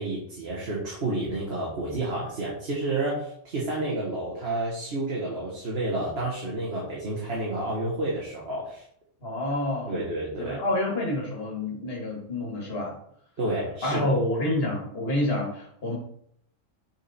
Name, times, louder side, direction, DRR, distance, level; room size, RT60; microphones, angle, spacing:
voice 1, 0.0-8.8 9.9-10.6 13.4-14.1, right 2 dB, 55° right, -4 dB, 1.5 m, -30 dB
voice 2, 9.2-10.0 10.4-13.0 13.8-16.0, left 1 dB, 50° left, -2 dB, 2.1 m, -28 dB
6.2 x 4.4 x 4.2 m, 0.69 s
omnidirectional pair, 1.3 m